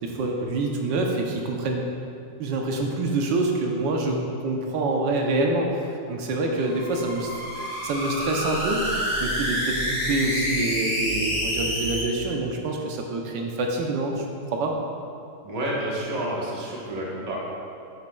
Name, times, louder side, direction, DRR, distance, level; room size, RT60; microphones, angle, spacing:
voice 1, 0.0-1.8 2.4-4.2 4.4-7.3 7.6-14.2 14.5-14.8, right 2 dB, 85° right, 1 dB, 1.4 m, -26 dB
sound 1, 6.6-12.0, equal, 5° right, 1.3 m, -28 dB
voice 2, 15.4-17.4, right 1 dB, 25° right, -5 dB, 1.1 m, -29 dB
9.5 x 6.7 x 2.3 m, 2.5 s
omnidirectional pair, 2.0 m